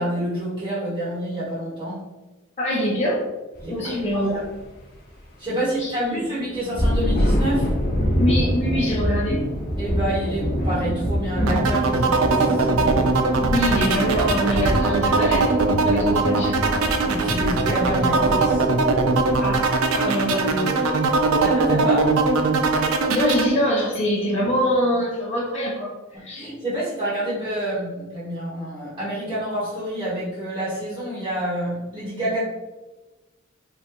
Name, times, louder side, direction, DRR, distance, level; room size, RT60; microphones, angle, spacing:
voice 1, 0.0-2.0 3.6-4.4 5.4-7.7 9.8-13.1 17.1-18.6 21.4-22.1 26.3-32.4, right 1 dB, 25° right, -10 dB, 1.0 m, -28 dB
voice 2, 2.6-3.3 3.7-4.4 5.6-6.2 8.2-9.4 13.4-15.6 15.8-16.6 19.4-19.7 19.9-21.1 23.1-25.9 26.2-26.5, equal, 30° left, -7 dB, 0.5 m, -24 dB
sound 1, 3.5-3.7 4.1-4.4 6.5-19.6, equal, 50° left, 1.0 m, -25 dB
sound 2, 11.5-23.5, right 3 dB, 85° right, 0.4 m, -21 dB
3.7 x 2.2 x 2.9 m, 1.1 s
head